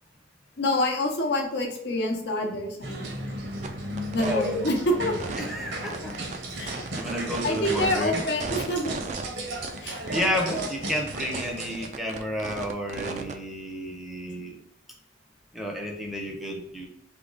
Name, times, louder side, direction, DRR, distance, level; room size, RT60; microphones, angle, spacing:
voice 1, 0.6-3.1 4.0-5.2 6.5-6.9 7.4-9.0 9.8-10.1, left 1 dB, 60° left, 2 dB, 0.8 m, -27 dB
sound 1, 2.8-11.9, right 1 dB, 70° right, 0.9 m, -35 dB
sound 2, 3.6-3.7 4.0-4.3 5.2-5.5 5.9-7.9 8.4-9.3 9.6-10.7 11.1-11.5 11.7-13.3, right 4 dB, 40° right, 0.4 m, -35 dB
voice 2, 4.2-4.7 5.4-6.1 6.9-8.2 10.1-14.6 15.5-16.9, equal, ahead, 0 dB, 0.7 m, -31 dB
3.6 x 2.9 x 3.9 m, 0.77 s
head